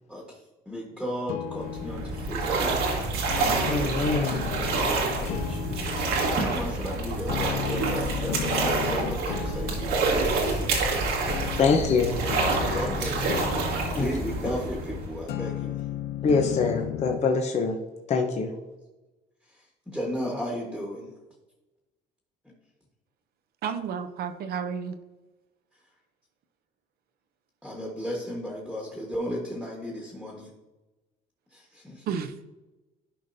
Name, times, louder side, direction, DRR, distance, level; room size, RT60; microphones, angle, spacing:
voice 1, 0.1-0.4 0.6-2.8 5.3-11.1 11.4-11.6 12.7-13.4 13.9-15.8 19.5-21.1 27.6-30.5 31.5-32.1, equal, 5° left, -2 dB, 1.5 m, -35 dB
sound 1, 1.3-17.3, left 12 dB, 75° left, 0.4 m, -36 dB
sound 2, 1.6-15.3, right 3 dB, 90° right, 1.8 m, -27 dB
voice 2, 3.6-4.4 11.6-12.2 14.0-14.1 16.2-17.8 18.1-18.5, left 4 dB, 40° left, 3 dB, 0.8 m, -24 dB
voice 3, 23.6-25.0 32.1-32.4, right 7 dB, 65° right, 8 dB, 0.7 m, -31 dB
12.0 x 5.1 x 2.7 m, 1.1 s
cardioid pair, 110°, 17 cm